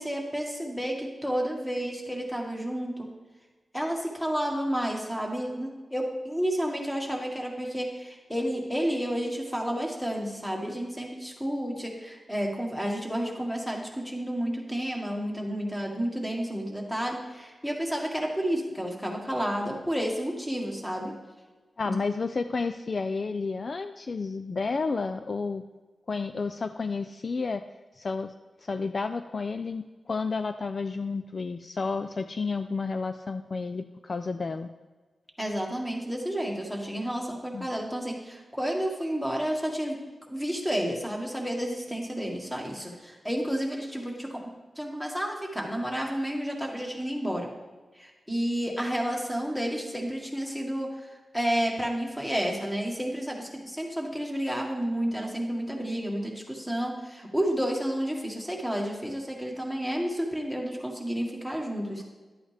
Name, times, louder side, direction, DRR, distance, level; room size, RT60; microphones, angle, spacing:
voice 1, 0.0-3.1 3.7-21.1 21.9-22.0 35.4-40.0 40.3-44.4 44.8-47.5 48.0-62.0, equal, 5° left, 0 dB, 1.8 m, -31 dB
voice 2, 21.8-25.6 26.1-27.6 27.9-28.3 28.6-34.7 37.5-37.7 61.5-61.6, left 4 dB, 50° left, 9 dB, 0.3 m, -31 dB
11.5 x 8.6 x 3.4 m, 1.3 s
wide cardioid pair, 95°, 0 cm